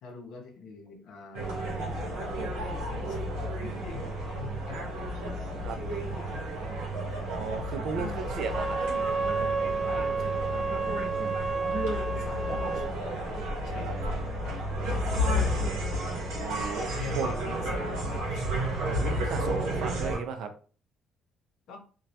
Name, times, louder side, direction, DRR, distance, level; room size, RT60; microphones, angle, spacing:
voice 1, 0.0-4.9 5.9-6.5 7.1-7.9 8.1-8.5 9.9-13.2 13.6-15.6 17.0-19.0 21.7-21.8, left 4 dB, 75° left, 2 dB, 0.7 m, -45 dB
sound 1, 1.3-20.2, equal, 85° right, 0.8 m, -32 dB
voice 2, 7.3-8.8 13.8-13.9 16.3-16.9 17.2-17.3 18.8-20.5, right 6 dB, 70° right, 7 dB, 0.4 m, -35 dB
Wind instrument woodwind instrument, 8.4-12.9, right 4 dB, 25° left, 0.7 m, -30 dB
2.2 x 2.0 x 2.7 m, 0.39 s
supercardioid pair, 65°, 0 cm